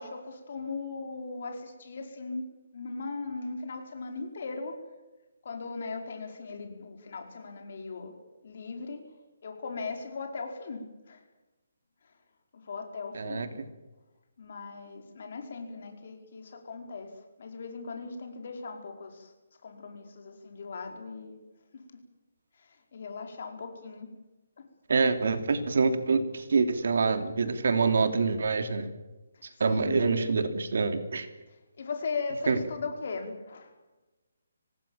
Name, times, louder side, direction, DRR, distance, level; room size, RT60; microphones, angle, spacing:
voice 1, 0.0-2.4 2.7-4.8 5.4-8.1 8.4-9.0 9.4-11.2 12.5-13.5 14.4-17.1 17.4-19.3 19.6-21.4 21.7-22.0 22.6-24.1 29.3-30.3 31.8-33.7, left 4 dB, 45° left, 5 dB, 4.9 m, -38 dB
voice 2, 13.1-13.5 24.9-28.9 29.6-31.3 32.5-32.6, right 4 dB, 60° right, 9 dB, 2.9 m, -26 dB
25.5 x 19.0 x 7.4 m, 1.1 s
hypercardioid pair, 175°, 0 cm